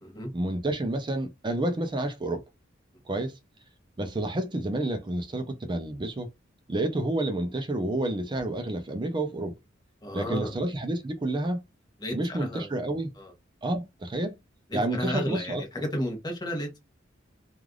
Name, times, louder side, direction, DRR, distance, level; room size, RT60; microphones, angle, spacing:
voice 1, 0.3-2.4 3.1-3.3 4.0-6.3 6.7-9.5 10.1-11.6 12.1-13.1 13.6-14.3 14.7-15.6, right 1 dB, 25° right, 0.5 m, -29 dB
voice 2, 10.0-10.5 12.0-12.7 13.2-13.3 14.7-16.8, equal, 20° left, 1.0 m, -33 dB
3.2 x 2.4 x 2.3 m
head